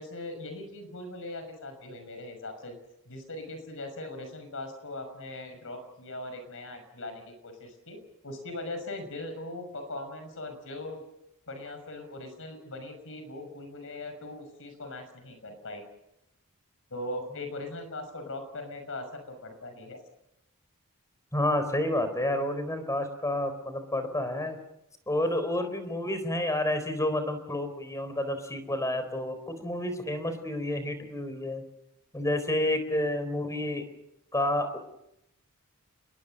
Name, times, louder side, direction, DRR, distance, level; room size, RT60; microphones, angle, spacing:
voice 1, 0.0-2.8 3.1-11.0 11.5-15.8 16.9-20.0, left 2 dB, 65° left, 7 dB, 6.0 m, -40 dB
voice 2, 21.3-24.6 25.1-31.6 32.1-33.8 34.3-34.8, left 1 dB, 15° left, 10 dB, 3.9 m, -29 dB
28.5 x 22.0 x 6.5 m, 0.84 s
head